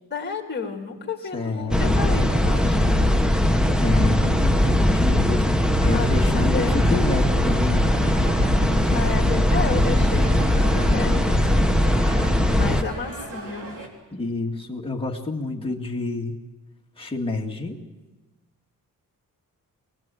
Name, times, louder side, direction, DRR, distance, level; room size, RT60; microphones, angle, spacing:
voice 1, 0.1-3.2 5.9-6.8 8.9-11.7 12.5-13.7 15.4-15.7, left 4 dB, 30° left, 2 dB, 2.8 m, -32 dB
voice 2, 1.3-2.8 3.8-8.2 14.1-16.4 17.0-17.8, left 2 dB, 15° left, 0 dB, 2.0 m, -29 dB
sound 1, 1.7-12.8, left 1 dB, ahead, 0.9 m, -20 dB
sound 2, 6.6-13.9, right 2 dB, 65° right, 3.6 m, -38 dB
23.0 x 20.0 x 9.0 m, 1.2 s
wide cardioid pair, 170°, 34 cm